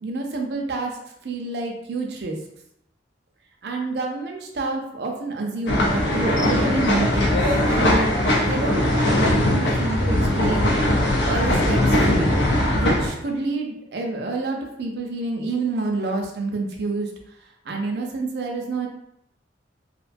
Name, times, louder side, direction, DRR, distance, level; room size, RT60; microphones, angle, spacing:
voice 1, 0.0-2.4 3.6-7.4 7.8-8.1 8.4-8.8 9.1-10.7 11.3-12.3 12.7-17.1 17.6-18.9, right 3 dB, 60° right, 1 dB, 0.4 m, -28 dB
sound 1, 5.7-13.1, left 1 dB, 75° left, 0.5 m, -20 dB
2.5 x 2.2 x 2.5 m, 0.77 s
head